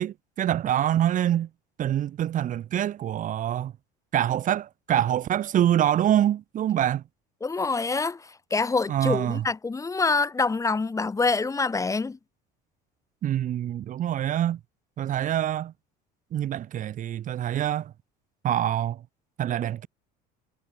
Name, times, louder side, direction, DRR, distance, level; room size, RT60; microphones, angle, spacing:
voice 1, 0.0-1.5 1.8-3.7 4.1-7.0 8.9-9.5 13.2-14.6 15.0-15.7 16.3-17.9 18.4-19.0 19.4-19.9, right 11 dB, 40° right, 2.3 m, -25 dB
voice 2, 7.4-12.2, left 4 dB, 15° left, 4.5 m, -26 dB
cardioid pair, 125°, 19 cm